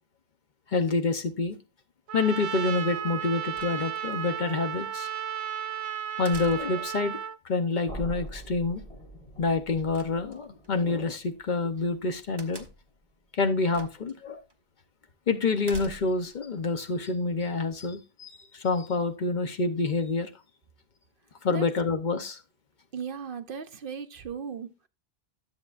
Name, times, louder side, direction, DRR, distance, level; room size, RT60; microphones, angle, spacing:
voice 1, 0.7-1.6 2.1-5.1 6.2-7.2 7.4-8.8 9.4-12.6 13.3-14.4 15.3-20.3 21.4-22.4, left 3 dB, 50° left, 0.9 m, -27 dB
Trumpet, 2.1-7.4, right 9 dB, 85° right, 0.9 m, -34 dB
sound 1, 3.5-4.2 6.2-6.9 9.9-10.7 12.4-13.0 13.7-14.1 14.5-14.6 15.6-16.3, right 3 dB, 25° right, 0.9 m, -45 dB
sound 2, 7.8-13.7, right 1 dB, 35° left, 2.3 m, -45 dB
voice 2, 22.9-24.9, right 6 dB, 60° right, 0.8 m, -37 dB
12.5 x 7.4 x 2.4 m
omnidirectional pair, 1.1 m